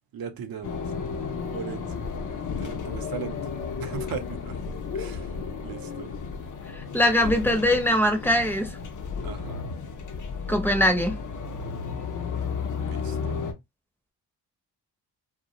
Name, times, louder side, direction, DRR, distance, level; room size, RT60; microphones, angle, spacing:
voice 1, 0.1-0.8 1.5-2.1 2.6-3.4 3.8-4.6 4.9-5.3 5.6-6.1 7.3-7.4 9.2-9.6 12.7-13.5, right 6 dB, 60° right, 0.7 m, -38 dB
sound 1, 0.6-13.5, left 5 dB, 50° left, 0.6 m, -33 dB
voice 2, 6.9-8.7 10.5-11.1, left 1 dB, 5° left, 0.7 m, -21 dB
2.3 x 2.1 x 2.8 m
cardioid pair, 70°, 41 cm